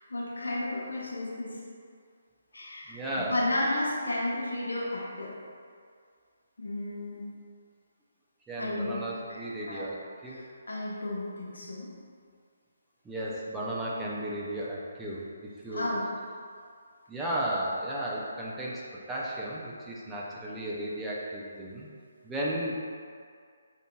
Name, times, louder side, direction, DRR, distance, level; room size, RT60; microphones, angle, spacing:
voice 1, 0.1-1.6 2.5-5.3 6.6-7.3 8.6-8.9 9.3-9.9 10.3-11.9 15.7-16.0, left 1 dB, 75° left, -5 dB, 0.8 m, -33 dB
voice 2, 2.9-3.4 8.5-10.4 13.1-15.2 15.6-15.9 17.1-18.8 19.1-21.9 22.2-22.8, right 1 dB, 10° right, -6 dB, 0.4 m, -34 dB
5.0 x 2.7 x 2.3 m, 2.1 s
figure-of-eight pair, 145°, 0 cm